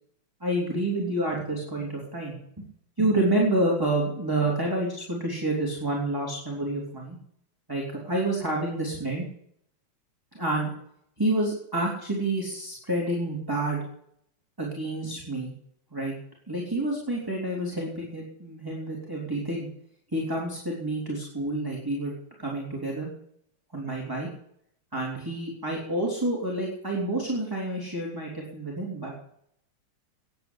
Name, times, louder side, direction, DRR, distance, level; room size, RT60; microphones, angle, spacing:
voice 1, 0.4-2.4 3.0-7.2 7.7-9.3 10.3-10.7 11.2-13.8 14.6-15.5 15.9-16.1 16.5-19.7 20.1-22.1 22.4-23.1 23.7-24.3 24.9-29.3, right 1 dB, 5° right, -3 dB, 3.3 m, -28 dB
14.0 x 10.5 x 8.2 m, 0.69 s
omnidirectional pair, 3.4 m